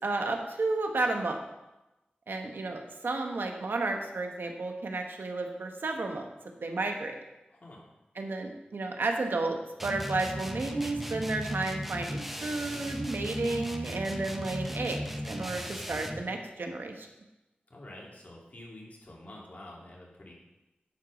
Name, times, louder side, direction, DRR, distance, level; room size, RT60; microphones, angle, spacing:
voice 1, 0.0-1.4 2.3-6.3 6.6-7.2 8.1-17.1, right 2 dB, 80° right, 3 dB, 1.1 m, -32 dB
sound 1, 9.8-16.3, equal, 5° right, 0.9 m, -37 dB
voice 2, 17.7-20.3, left 1 dB, 50° left, -3 dB, 2.8 m, -48 dB
11.0 x 4.7 x 5.1 m, 1.0 s
cardioid pair, 50°, 4 cm